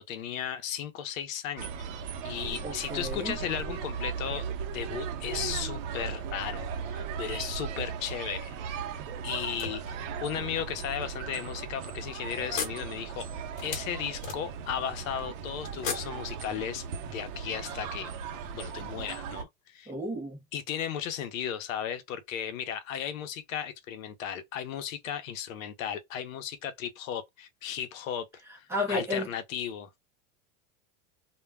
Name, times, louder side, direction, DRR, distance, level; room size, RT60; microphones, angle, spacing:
voice 1, 0.0-1.7 2.2-4.4 4.7-8.8 9.2-13.3 13.6-18.1 18.5-19.9 20.5-28.3 28.6-29.9, left 9 dB, 80° left, 0.7 m, -35 dB
sound 1, 1.6-19.4, right 6 dB, 65° right, 0.6 m, -37 dB
voice 2, 2.6-3.4 19.9-20.4 28.7-29.3, left 1 dB, 5° right, 0.5 m, -32 dB
sound 2, 9.1-10.4 11.1-11.2 11.6-11.8 12.5-14.8 15.8-16.9, left 6 dB, 60° left, 1.0 m, -39 dB
2.2 x 2.1 x 3.3 m
supercardioid pair, 150°, 40 cm